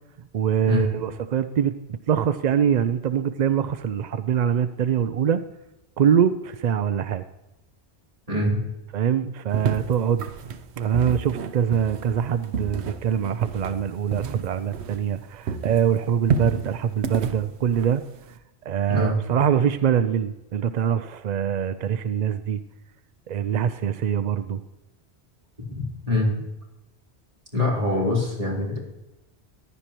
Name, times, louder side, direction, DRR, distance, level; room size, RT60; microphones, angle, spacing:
voice 1, 0.3-5.4 6.0-7.2 8.9-10.2 10.8-18.0 18.7-22.6 23.3-24.6, right 8 dB, 55° right, 11 dB, 0.5 m, -23 dB
voice 2, 8.3-8.6 18.9-19.2 25.7-26.3 27.5-28.8, left 2 dB, 35° right, -4 dB, 3.9 m, -24 dB
sound 1, 9.5-15.2 15.5-18.4, right 5 dB, 85° right, 1.0 m, -30 dB
15.0 x 11.0 x 3.0 m, 0.96 s
omnidirectional pair, 1.1 m